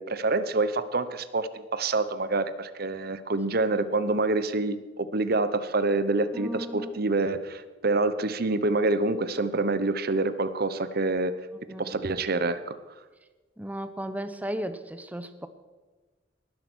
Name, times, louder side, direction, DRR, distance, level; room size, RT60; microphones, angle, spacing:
voice 1, 0.0-11.3 11.8-12.8, right 2 dB, 55° right, 13 dB, 0.9 m, -27 dB
voice 2, 6.3-6.9 11.7-12.0 13.6-15.5, equal, 10° right, 10 dB, 0.8 m, -35 dB
19.0 x 11.5 x 6.2 m, 1.3 s
head